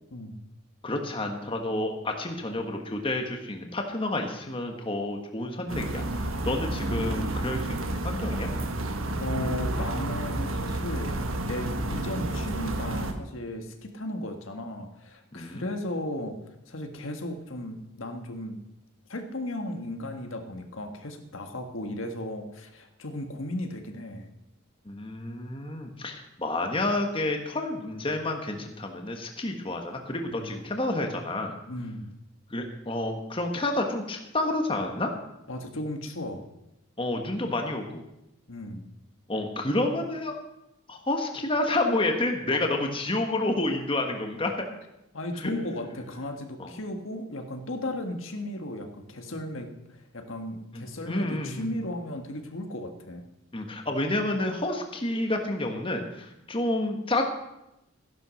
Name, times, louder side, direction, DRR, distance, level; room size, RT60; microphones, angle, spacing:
voice 1, 0.8-8.5 15.3-15.7 24.8-31.6 32.5-35.1 37.0-38.1 39.3-40.4 40.9-44.5 45.4-45.5 46.6-46.7 50.7-51.7 53.5-57.3, left 2 dB, 25° left, 3 dB, 1.5 m, -29 dB
sound 1, 5.7-13.1, right 1 dB, 75° right, 1.5 m, -30 dB
voice 2, 9.2-16.4 16.7-18.6 19.1-24.3 30.3-30.5 31.7-32.1 35.5-36.5 38.5-38.9 45.1-53.2, left 1 dB, 70° left, 5 dB, 1.7 m, -35 dB
14.5 x 11.0 x 6.3 m, 0.89 s
head